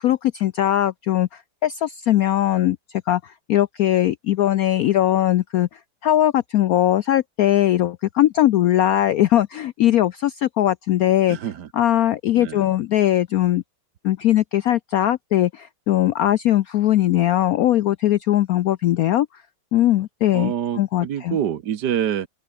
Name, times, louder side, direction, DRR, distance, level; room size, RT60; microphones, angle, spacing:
voice 1, 0.0-5.7 6.0-11.4 11.8-13.6 14.0-19.3 19.7-21.4, left 13 dB, 80° left, 0.8 m, -20 dB
voice 2, 11.3-11.7 12.3-12.7 20.3-22.3, right 10 dB, 60° right, 1.6 m, -26 dB
open air
omnidirectional pair, 2.1 m